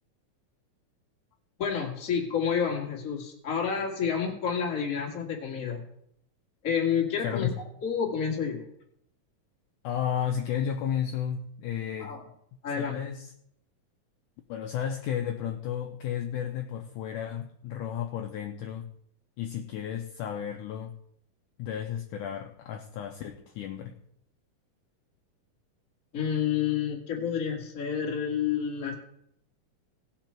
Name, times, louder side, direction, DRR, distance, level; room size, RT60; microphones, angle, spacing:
voice 1, 1.6-5.8 6.6-7.5 7.8-8.6 12.0-12.2 12.6-13.0 26.1-28.9, left 7 dB, 30° left, 0 dB, 1.7 m, -29 dB
voice 2, 7.2-7.5 9.8-12.1 12.8-13.3 14.5-18.9 19.4-20.9 21.6-24.0, left 9 dB, 75° left, 3 dB, 1.9 m, -33 dB
18.0 x 6.2 x 4.5 m, 0.72 s
omnidirectional pair, 4.3 m